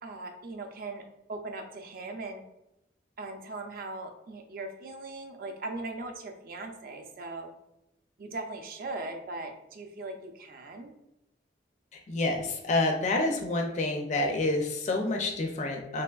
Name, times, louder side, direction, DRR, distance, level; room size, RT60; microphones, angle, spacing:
voice 1, 0.0-1.0 1.3-2.4 3.2-7.5 8.2-10.9, right 2 dB, 50° right, 4 dB, 0.4 m, -39 dB
voice 2, 12.1-16.0, left 2 dB, 40° left, 2 dB, 0.4 m, -28 dB
3.3 x 2.9 x 2.3 m, 0.85 s
head